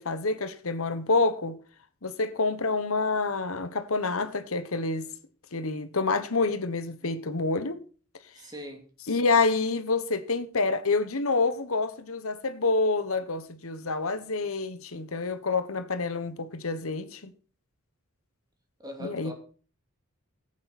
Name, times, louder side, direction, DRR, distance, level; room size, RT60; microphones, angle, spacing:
voice 1, 0.0-1.6 2.0-5.1 5.5-7.8 9.1-17.3 19.0-19.3, left 3 dB, 70° left, 1.2 m, -27 dB
voice 2, 8.4-8.8 18.8-19.3, left 1 dB, 20° right, 2.8 m, -40 dB
15.0 x 8.7 x 4.3 m
head